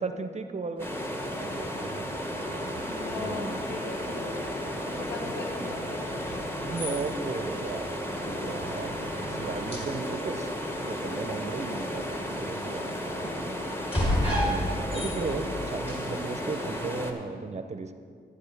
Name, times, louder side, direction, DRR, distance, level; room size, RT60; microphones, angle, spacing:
voice 1, 0.0-2.4 3.1-3.7 5.3-5.8 6.6-7.9 8.3-9.0 9.3-10.5 10.8-13.5 14.4-17.9, right 4 dB, 35° right, 8 dB, 0.6 m, -36 dB
sound 1, 0.8-17.0, equal, 30° left, 2.5 m, -37 dB
sound 2, 0.8-17.1, equal, 10° left, 1.0 m, -34 dB
voice 2, 1.4-1.8 2.7-4.4 4.9-6.0 14.7-15.2, left 4 dB, 70° left, 4 dB, 1.1 m, -40 dB
sound 3, 2.3-9.9, right 8 dB, 80° right, 0.5 m, -47 dB
12.0 x 9.6 x 3.4 m, 2.2 s
cardioid pair, 85°, 19 cm